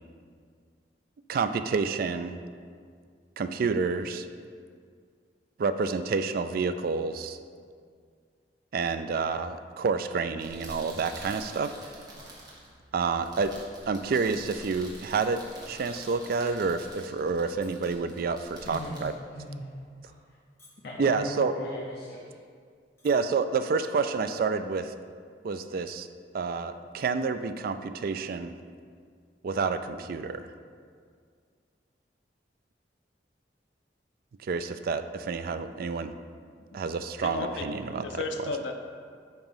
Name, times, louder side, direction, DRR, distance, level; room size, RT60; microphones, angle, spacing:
voice 1, 1.3-2.4 3.4-4.3 5.6-7.4 8.7-11.7 12.9-13.5 13.9-19.1 21.0-21.5 23.0-24.9 25.4-26.1 26.3-28.5 29.4-30.5 34.4-36.2 36.7-38.5, right 4 dB, 55° right, 11 dB, 0.3 m, -29 dB
sound 1, 10.3-20.1, right 1 dB, 25° right, 1.3 m, -48 dB
sound 2, 17.6-17.9 18.3-18.6 19.2-19.4 20.1-20.3 20.6-21.1 21.8-21.9 22.2-22.3 22.8-23.1 23.5-23.7, left 2 dB, 15° left, 1.4 m, -57 dB
voice 2, 18.6-19.7 20.0-20.4 20.8-22.2, equal, 60° left, -4 dB, 0.8 m, -38 dB
voice 3, 37.2-38.8, left 3 dB, 90° left, 3 dB, 0.5 m, -34 dB
8.9 x 3.0 x 5.5 m, 2.1 s
head